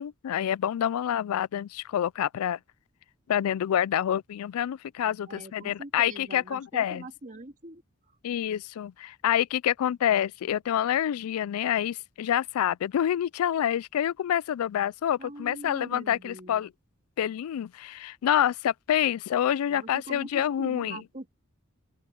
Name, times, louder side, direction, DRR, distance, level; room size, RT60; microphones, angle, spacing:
voice 1, 0.0-2.6 3.3-7.0 8.2-16.7 17.2-21.0, left 10 dB, 90° left, 0.3 m, -27 dB
voice 2, 5.3-7.8 15.2-16.7 19.7-21.3, right 2 dB, 35° right, 2.5 m, -43 dB
open air
head